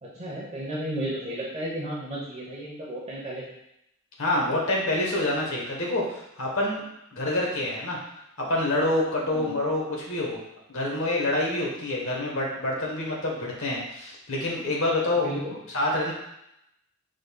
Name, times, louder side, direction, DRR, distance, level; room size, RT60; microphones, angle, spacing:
voice 1, 0.0-3.5 9.3-9.6 15.2-15.6, right 1 dB, 30° right, -5 dB, 0.9 m, -33 dB
voice 2, 4.2-6.8 7.1-8.0 8.4-10.4 10.7-15.4 15.7-16.1, left 1 dB, 70° left, -2 dB, 1.2 m, -27 dB
5.1 x 3.9 x 2.3 m, 0.82 s
head